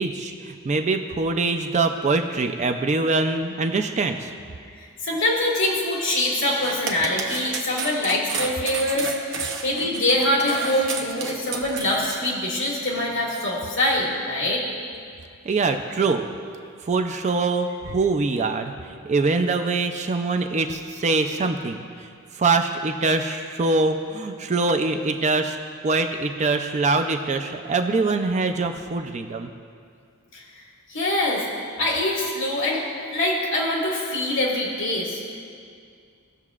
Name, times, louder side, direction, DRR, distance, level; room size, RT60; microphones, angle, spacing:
voice 1, 0.0-4.3 15.5-16.3 16.8-21.8 22.3-25.6 25.8-29.5, right 3 dB, 30° right, 6 dB, 0.4 m, -23 dB
voice 2, 5.0-9.1 9.6-14.6 30.3-30.4 30.9-31.4 31.8-32.8 33.1-35.2, left 1 dB, 55° left, -4 dB, 2.1 m, -24 dB
sound 1, 6.4-12.2, right 5 dB, 55° right, 0.9 m, -31 dB
17.5 x 6.7 x 2.4 m, 2.3 s
head